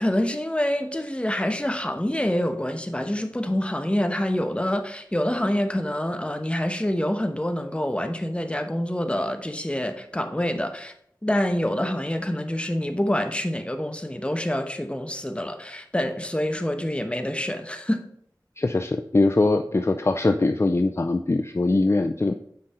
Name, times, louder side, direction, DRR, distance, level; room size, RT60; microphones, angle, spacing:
voice 1, 0.0-10.9 11.2-18.0, left 1 dB, 15° left, 1.0 m, -26 dB
voice 2, 18.6-22.4, left 2 dB, 35° left, 0.4 m, -22 dB
7.6 x 5.3 x 4.3 m
wide cardioid pair, 45°, 7 cm